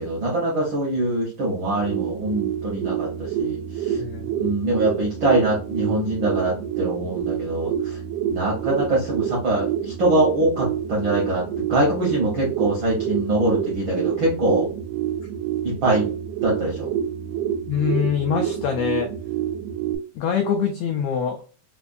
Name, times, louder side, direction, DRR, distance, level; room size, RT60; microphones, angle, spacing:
voice 1, 0.0-4.0 4.4-8.0 8.3-14.7 15.6-16.1 16.4-16.9, right 1 dB, 70° right, -4 dB, 1.1 m, -23 dB
sound 1, 1.6-20.0, right 10 dB, 90° right, 2.1 m, -28 dB
voice 2, 3.9-4.3 17.7-19.1 20.1-21.4, left 7 dB, 85° left, 3 dB, 1.4 m, -24 dB
4.9 x 2.2 x 2.5 m, 0.37 s
omnidirectional pair, 3.4 m